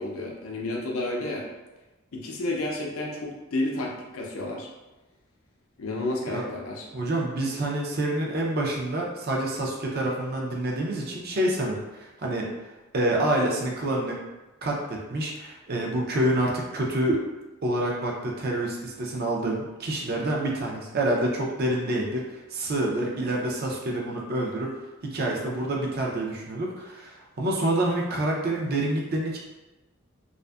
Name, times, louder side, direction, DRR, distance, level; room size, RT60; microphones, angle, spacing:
voice 1, 0.0-1.5 2.1-4.7 5.8-6.9, left 2 dB, 80° left, -1 dB, 0.5 m, -31 dB
voice 2, 6.9-12.5 12.9-14.2 14.6-17.2 17.6-24.7 25.0-29.4, right 1 dB, 50° right, -2 dB, 0.5 m, -27 dB
2.5 x 2.4 x 2.3 m, 1.1 s
head